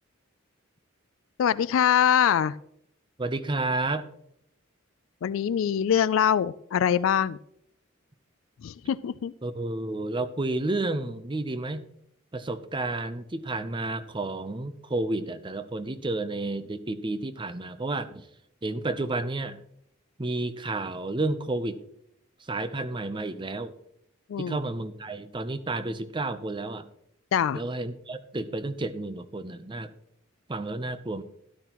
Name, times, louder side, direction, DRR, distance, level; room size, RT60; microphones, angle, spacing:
voice 1, 1.4-2.5 5.2-7.4 8.6-9.3 24.3-24.6 27.3-27.6, left 8 dB, 70° left, 16 dB, 0.3 m, -23 dB
voice 2, 3.2-4.1 9.4-11.8 12.3-18.3 18.6-19.6 20.2-21.8 22.4-23.7 24.4-26.8 27.5-29.9 30.5-31.2, right 2 dB, 25° right, 12 dB, 0.6 m, -31 dB
12.5 x 12.0 x 3.0 m, 0.74 s
head